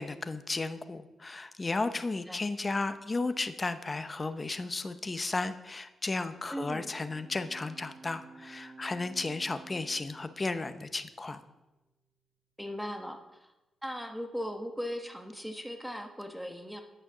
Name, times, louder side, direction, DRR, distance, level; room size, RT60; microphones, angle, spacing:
voice 1, 0.0-11.4, left 3 dB, 30° left, 10 dB, 0.7 m, -34 dB
Bowed string instrument, 6.0-11.4, right 3 dB, 55° right, 1.3 m, -53 dB
voice 2, 6.5-6.9 12.6-13.5 13.8-16.8, equal, ahead, 4 dB, 1.2 m, -38 dB
9.0 x 6.4 x 6.1 m, 1.0 s
cardioid pair, 70°, 0 cm